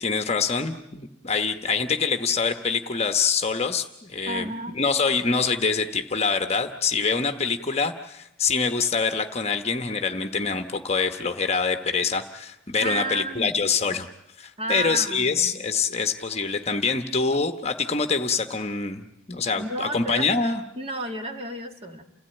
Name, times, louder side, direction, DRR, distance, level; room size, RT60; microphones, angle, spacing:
voice 1, 0.0-14.1 14.4-20.6, left 5 dB, 30° left, 7 dB, 1.1 m, -25 dB
voice 2, 4.3-4.8 6.9-7.2 12.8-13.5 14.6-15.6 19.6-20.4 20.8-22.0, right 1 dB, 30° right, 4 dB, 2.0 m, -32 dB
29.5 x 16.5 x 9.0 m, 0.89 s
head